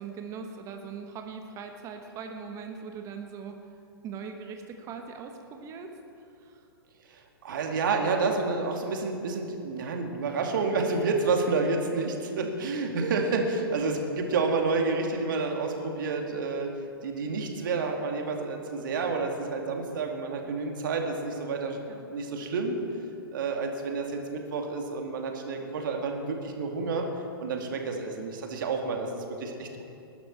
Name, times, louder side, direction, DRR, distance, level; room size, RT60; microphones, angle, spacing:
voice 1, 0.0-3.7 4.0-6.7 12.4-12.6 21.9-22.1 27.9-28.3, right 5 dB, 25° right, 5 dB, 1.1 m, -41 dB
voice 2, 7.1-16.7 17.0-21.8 22.1-22.8 23.3-27.1 27.4-29.8, right 4 dB, 55° right, 3 dB, 2.2 m, -29 dB
19.5 x 11.5 x 4.5 m, 2.6 s
figure-of-eight pair, 115°, 13 cm